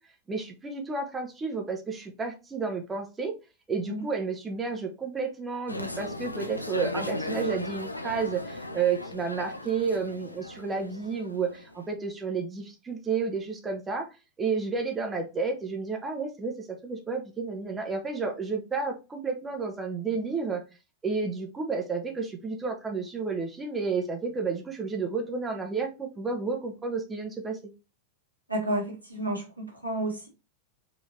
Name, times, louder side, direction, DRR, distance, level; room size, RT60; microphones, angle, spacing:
voice 1, 0.3-3.4 3.7-14.1 14.4-20.6 21.0-27.6, right 4 dB, 15° right, 3 dB, 0.7 m, -31 dB
sound 1, 5.7-11.9, left 1 dB, 85° left, 0.4 m, -37 dB
voice 2, 28.5-30.3, right 1 dB, 85° right, -1 dB, 1.3 m, -31 dB
4.2 x 2.9 x 2.7 m, 0.29 s
figure-of-eight pair, 90°, 0 cm